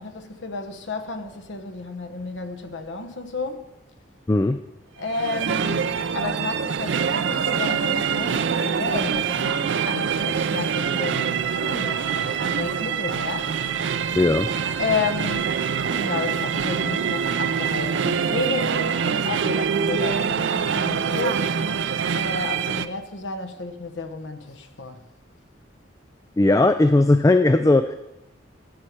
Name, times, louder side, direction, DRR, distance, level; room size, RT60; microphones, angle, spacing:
voice 1, 0.0-3.7 5.0-13.5 14.8-15.6 16.0-21.6 22.1-25.1, left 3 dB, 85° left, 1.1 m, -31 dB
voice 2, 4.3-4.6 14.1-14.5 26.4-28.0, left 2 dB, 20° left, 0.3 m, -17 dB
sound 1, 5.1-22.9, right 6 dB, 80° right, 0.5 m, -25 dB
13.0 x 8.6 x 4.6 m
head